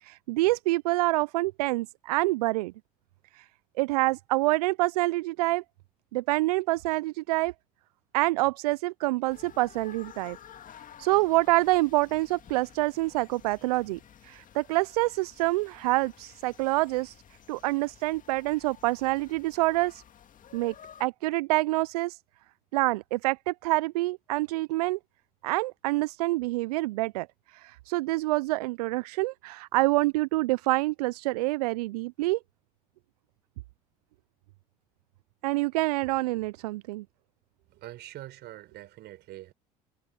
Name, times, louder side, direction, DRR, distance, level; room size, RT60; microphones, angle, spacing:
voice 1, 0.0-2.7 3.3-3.4 3.8-5.6 6.1-7.5 8.1-10.4 11.0-17.2 17.5-20.0 20.5-20.7 21.0-22.2 22.7-25.0 25.4-27.3 27.5-32.4 35.4-37.0, right 20 dB, 80° right, 0.4 m, -27 dB
sound 1, 9.3-21.1, left 9 dB, 45° left, 2.1 m, -52 dB
voice 2, 37.7-39.5, right 15 dB, 60° right, 5.0 m, -44 dB
hypercardioid pair, 65°, 20 cm